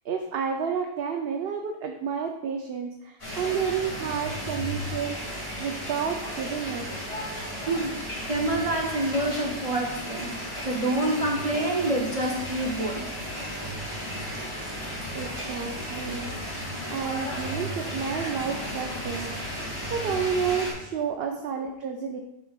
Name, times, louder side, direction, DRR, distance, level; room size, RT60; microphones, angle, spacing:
voice 1, 0.0-5.2 5.6-6.9 15.1-16.3 16.9-19.3 19.9-22.2, right 6 dB, 70° right, 3 dB, 0.8 m, -30 dB
sound 1, 3.2-20.7, equal, 65° left, 2.8 m, -34 dB
voice 2, 7.7-8.0 8.3-13.1 18.5-18.6, right 1 dB, 35° right, 0 dB, 0.8 m, -27 dB
10.0 x 6.1 x 2.4 m, 0.87 s
omnidirectional pair, 1.1 m